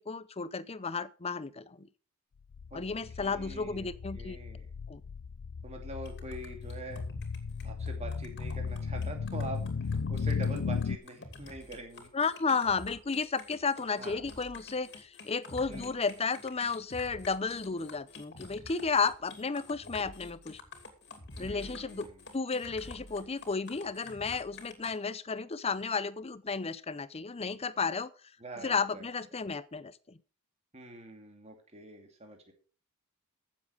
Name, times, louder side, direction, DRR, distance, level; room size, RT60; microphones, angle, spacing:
voice 1, 0.0-1.9 2.7-4.4 4.9-5.0 12.1-20.6 21.4-22.1 22.3-28.1 28.6-30.2, left 4 dB, 30° left, 0.6 m, -33 dB
sound 1, 2.5-11.0, left 5 dB, 70° left, 0.5 m, -36 dB
voice 2, 3.2-4.7 5.6-7.1 7.6-12.1 13.9-14.2 15.7-15.9 21.4-22.3 28.4-29.1 30.7-32.5, right 2 dB, 30° right, 2.6 m, -44 dB
sound 2, 6.1-24.9, left 2 dB, 50° left, 2.6 m, -48 dB
14.5 x 7.4 x 5.0 m
head